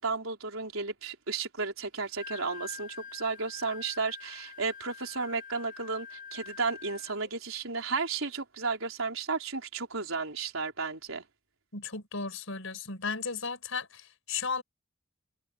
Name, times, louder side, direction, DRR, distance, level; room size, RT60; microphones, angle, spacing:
voice 1, 0.0-11.2, right 4 dB, 85° right, 4.3 m, -33 dB
Wind instrument woodwind instrument, 2.0-7.3, left 6 dB, 45° left, 7.9 m, -46 dB
voice 2, 11.7-14.6, left 5 dB, 75° left, 5.5 m, -35 dB
head